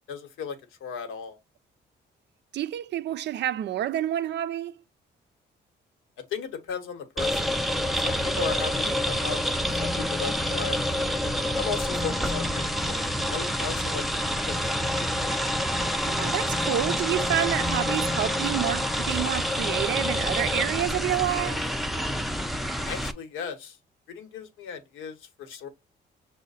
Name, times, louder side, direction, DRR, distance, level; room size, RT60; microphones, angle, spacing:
voice 1, 0.1-0.6 0.8-1.4 6.3-7.5 7.9-10.8 11.6-13.0 13.3-14.0 22.8-23.8 24.1-25.7, left 6 dB, 90° left, 1.0 m, -36 dB
voice 2, 2.5-4.8 16.0-21.7, right 12 dB, 60° right, 0.4 m, -28 dB
sound 1, 7.2-23.1, equal, ahead, 0.4 m, -27 dB
6.2 x 2.1 x 4.0 m
cardioid pair, 90°, 20 cm